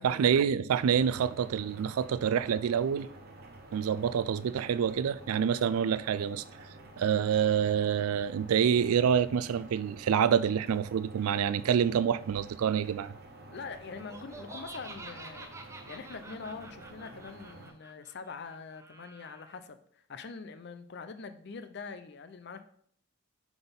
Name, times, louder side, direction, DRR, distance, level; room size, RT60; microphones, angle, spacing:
voice 1, 0.0-3.1 3.7-6.4 7.0-13.1, right 8 dB, 85° right, 0.3 m, -27 dB
sound 1, 0.8-17.7, right 2 dB, 45° right, 0.9 m, -50 dB
voice 2, 13.5-15.5 15.9-22.6, left 4 dB, 50° left, 0.5 m, -44 dB
Laughter, 14.0-19.6, right 2 dB, 15° right, 0.5 m, -48 dB
5.9 x 4.0 x 5.2 m
head